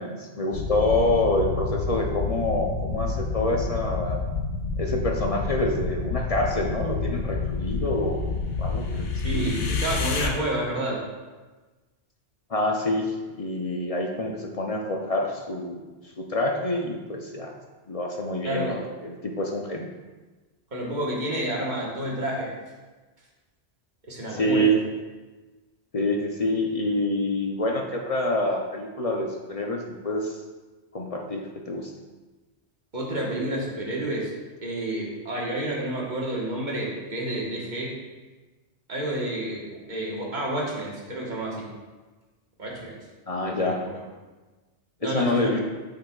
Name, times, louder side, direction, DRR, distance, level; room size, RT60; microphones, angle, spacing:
voice 1, 0.0-4.3 4.8-8.2 8.6-9.6 12.5-15.9 16.2-17.5 17.9-18.8 19.0-19.9 24.3-24.8 25.9-30.4 30.9-31.9 43.3-43.8 45.0-45.6, left 1 dB, 45° left, 1 dB, 0.5 m, -27 dB
sound 1, 0.5-10.3, left 4 dB, 85° left, 1.0 m, -29 dB
voice 2, 9.2-11.0 18.4-18.8 20.7-22.5 24.1-24.7 32.9-34.3 34.6-38.0 38.9-41.7 42.6-43.0 43.4-44.0 45.0-45.6, right 1 dB, 40° right, -3 dB, 1.5 m, -30 dB
7.9 x 6.7 x 2.3 m, 1.3 s
omnidirectional pair, 1.2 m